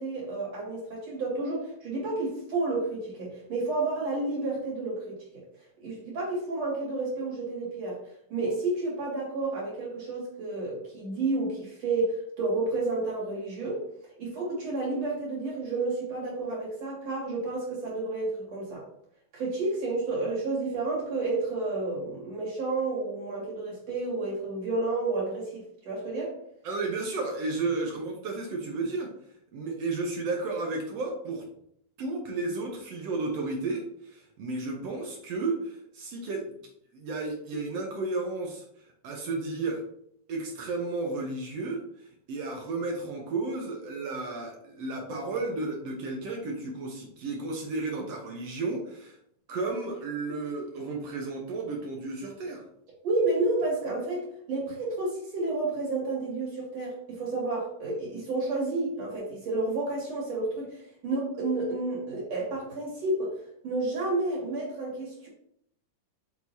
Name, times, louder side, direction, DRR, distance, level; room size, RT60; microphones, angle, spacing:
voice 1, 0.0-5.4 5.8-8.0 8.3-13.8 14.2-18.8 19.3-26.4 53.0-63.3 63.6-65.3, right 2 dB, 50° right, -4 dB, 3.4 m, -30 dB
voice 2, 26.6-29.1 29.5-31.4 32.0-36.5 36.9-39.8 40.3-49.2 49.5-52.6, right 3 dB, 65° right, 0 dB, 1.7 m, -33 dB
7.0 x 6.2 x 2.8 m, 0.71 s
omnidirectional pair, 3.8 m